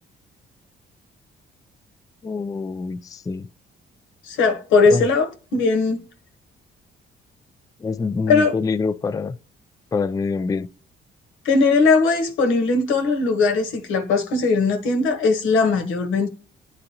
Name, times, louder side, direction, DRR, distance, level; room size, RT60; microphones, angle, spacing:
voice 1, 2.2-3.5 4.9-5.1 7.8-9.3 9.9-10.7, left 4 dB, 20° left, 0.3 m, -25 dB
voice 2, 4.2-6.0 8.3-8.5 11.4-16.3, left 4 dB, 90° left, 1.2 m, -19 dB
9.6 x 3.9 x 2.8 m
cardioid pair, 90°, 20 cm